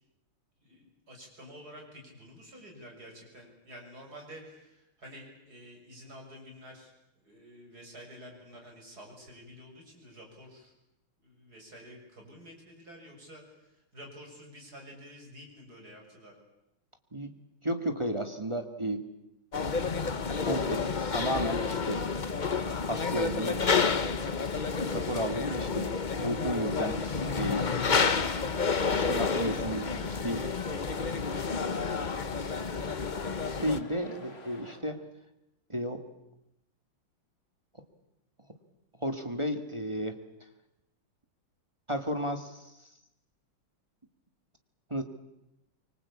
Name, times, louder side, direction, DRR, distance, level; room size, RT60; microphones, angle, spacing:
voice 1, 0.6-10.7 11.2-16.3, equal, 45° right, 0 dB, 7.4 m, -50 dB
voice 2, 17.6-19.1 19.8-22.1 22.9-23.8 24.9-27.1 27.4-27.7 28.9-30.5 33.6-35.0 35.7-36.0 39.0-40.2 41.9-42.7 44.9-45.0, equal, 15° right, 6 dB, 1.8 m, -33 dB
sound 1, 19.5-33.8, left 5 dB, 40° left, 0.7 m, -30 dB
sound 2, 26.8-34.8, left 2 dB, 90° left, 4.8 m, -49 dB
25.0 x 24.5 x 8.6 m, 0.90 s
omnidirectional pair, 2.3 m